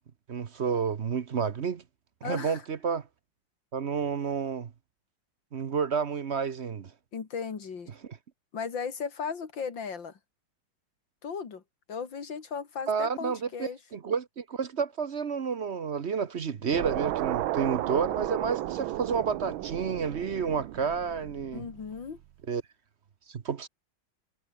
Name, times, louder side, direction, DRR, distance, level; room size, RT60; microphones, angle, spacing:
voice 1, 0.3-1.8 2.2-3.0 3.7-4.7 5.5-6.9 12.9-21.7 22.5-22.6 23.3-23.7, right 6 dB, 45° right, 0.9 m, -30 dB
voice 2, 2.2-2.6 7.1-7.9 8.5-10.2 11.2-11.6 11.9-13.8 21.5-22.2, left 6 dB, 65° left, 3.1 m, -36 dB
sound 1, 16.7-22.0, right 13 dB, 80° right, 1.6 m, -33 dB
omnidirectional pair, 2.2 m